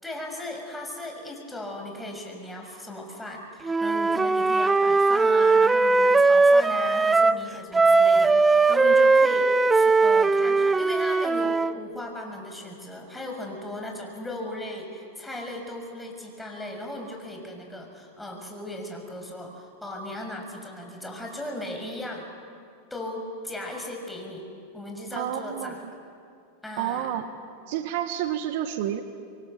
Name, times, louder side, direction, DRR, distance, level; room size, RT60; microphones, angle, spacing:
voice 1, 0.0-22.3 22.9-24.5 24.7-25.8 26.6-27.1, left 1 dB, 5° left, 2 dB, 6.4 m, -37 dB
Wind instrument woodwind instrument, 3.7-7.4 7.7-11.8, right 3 dB, 15° right, 0.6 m, -19 dB
voice 2, 25.1-25.8 26.8-27.3 27.7-29.0, right 11 dB, 60° right, 8 dB, 1.6 m, -29 dB
27.0 x 23.5 x 7.8 m, 2.4 s
hypercardioid pair, 105°, 0 cm